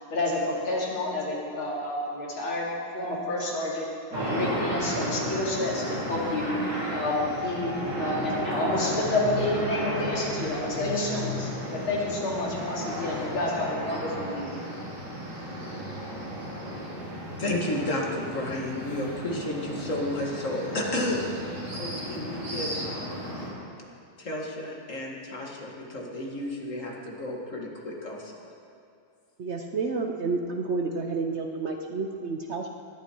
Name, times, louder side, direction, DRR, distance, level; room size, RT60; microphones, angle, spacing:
voice 1, 0.0-2.7 2.9-3.9 4.1-6.5 6.9-14.5, left 2 dB, 80° left, -4 dB, 3.6 m, -29 dB
sound 1, 4.1-23.5, equal, 50° right, 4.1 m, -34 dB
voice 2, 17.4-21.2 21.7-23.2 24.2-28.4, left 1 dB, 40° left, -1 dB, 2.1 m, -32 dB
voice 3, 29.4-32.7, right 4 dB, 75° right, 3 dB, 0.6 m, -30 dB
19.5 x 11.0 x 4.5 m, 2.4 s
omnidirectional pair, 2.2 m